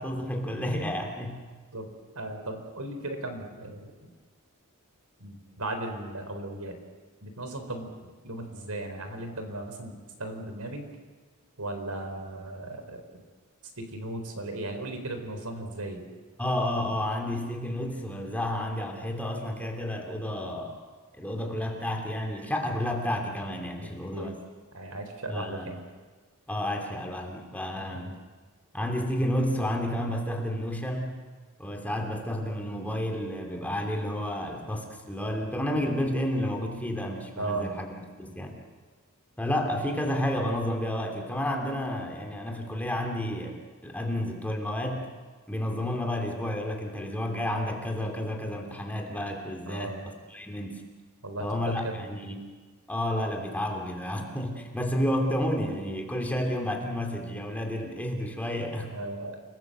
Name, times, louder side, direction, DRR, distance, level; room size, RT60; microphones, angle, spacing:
voice 1, 0.0-1.4 16.4-20.7 21.1-24.3 25.3-25.7 26.5-28.1 28.7-31.2 31.6-38.6 39.4-45.1 45.5-50.0 50.3-50.9 51.4-52.4 52.9-58.9, left 1 dB, 5° left, 2 dB, 3.1 m, -31 dB
voice 2, 2.1-4.1 5.2-6.8 7.2-10.9 11.6-13.2 13.8-16.0 23.8-24.4 24.7-25.8 27.9-28.1 37.4-37.7 49.7-50.0 51.2-52.1 58.9-59.4, right 2 dB, 75° right, 6 dB, 4.3 m, -36 dB
29.0 x 20.0 x 8.0 m, 1.4 s
head